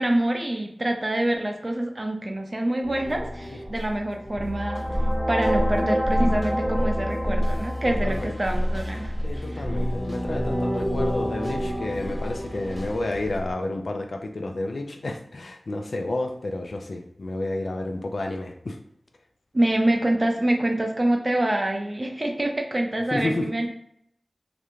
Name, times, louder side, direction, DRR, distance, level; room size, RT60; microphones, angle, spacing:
voice 1, 0.0-4.8 5.3-9.6 19.5-23.7, right 1 dB, 35° right, 3 dB, 0.4 m, -26 dB
sound 1, 2.8-13.5, equal, 10° left, 0.6 m, -27 dB
sound 2, 3.1-3.3 3.8-4.3 4.6-6.0 6.3-13.4, equal, 5° right, 0.9 m, -45 dB
voice 2, 7.9-8.4 9.2-18.8 23.1-23.7, left 2 dB, 80° left, 4 dB, 0.3 m, -31 dB
2.5 x 2.1 x 3.0 m, 0.70 s
wide cardioid pair, 75°, 0 cm